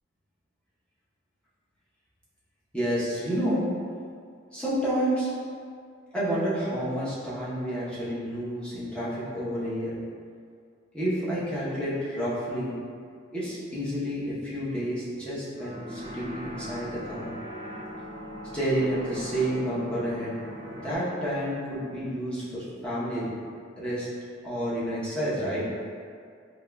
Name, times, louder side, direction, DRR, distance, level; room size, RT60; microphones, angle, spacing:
voice 1, 2.7-3.7 4.5-5.3 6.1-9.9 10.9-12.8 13.3-17.3 18.5-20.3 20.7-23.3 23.8-24.1 24.4-25.6, equal, 5° left, -10 dB, 0.8 m, -29 dB
sound 1, 15.6-21.0, equal, 75° right, 0.8 m, -40 dB
3.6 x 2.8 x 2.2 m, 2.2 s
head